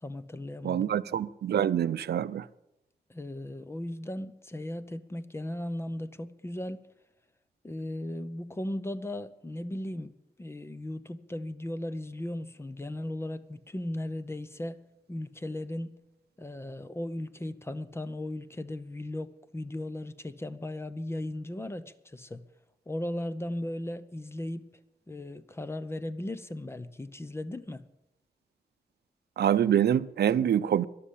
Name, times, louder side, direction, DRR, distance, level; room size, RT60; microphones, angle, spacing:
voice 1, 0.0-0.8 3.1-6.9 7.6-14.8 15.1-15.9 16.4-22.4 22.9-24.7 25.1-27.8, left 1 dB, 15° left, 0.7 m, -37 dB
voice 2, 0.6-2.5 29.4-30.8, right 9 dB, 85° right, 0.5 m, -25 dB
13.0 x 11.5 x 8.4 m
wide cardioid pair, 165°, 17 cm